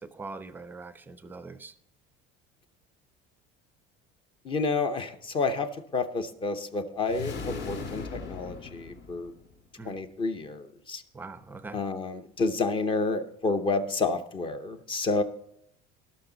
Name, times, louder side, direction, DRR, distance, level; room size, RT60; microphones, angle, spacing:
voice 1, 0.0-1.7 9.8-10.0 11.1-11.8, right 3 dB, 10° right, 13 dB, 0.5 m, -42 dB
voice 2, 4.4-9.3 9.8-11.0 11.7-15.2, left 3 dB, 25° left, 10 dB, 0.8 m, -30 dB
sound 1, 7.0-9.6, left 4 dB, 55° left, 2.0 m, -38 dB
18.0 x 6.2 x 3.9 m, 0.75 s
cardioid pair, 170°, 20 cm